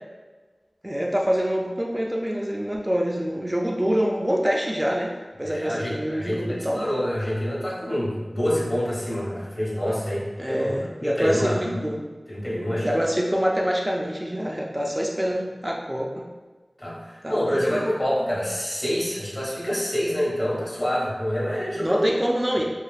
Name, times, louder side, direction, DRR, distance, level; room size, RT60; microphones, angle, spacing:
voice 1, 0.8-5.1 5.4-6.9 10.4-12.0 12.8-16.2 17.2-17.9 21.8-22.6, equal, 15° right, -1 dB, 0.3 m, -26 dB
voice 2, 5.4-11.8 12.3-13.1 14.7-14.9 16.8-22.1, equal, 35° left, -7 dB, 0.9 m, -27 dB
3.1 x 2.4 x 2.4 m, 1.3 s
wide cardioid pair, 60°, 0 cm